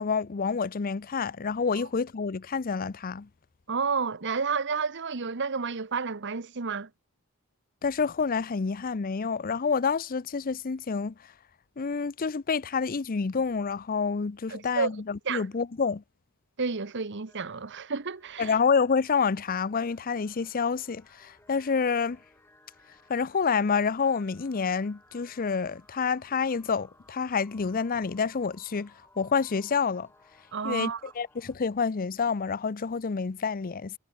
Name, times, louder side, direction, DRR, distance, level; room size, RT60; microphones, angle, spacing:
voice 1, 0.0-3.3 7.8-11.1 11.8-16.0 18.4-22.2 23.1-28.9 29.2-30.1 30.6-33.9, left 5 dB, 40° left, 0.5 m, -28 dB
voice 2, 3.7-6.9 14.5-14.9 15.2-15.5 16.6-18.6 30.5-31.0, right 5 dB, 55° right, 1.1 m, -30 dB
sound 1, 17.3-31.6, left 2 dB, 10° left, 5.6 m, -60 dB
head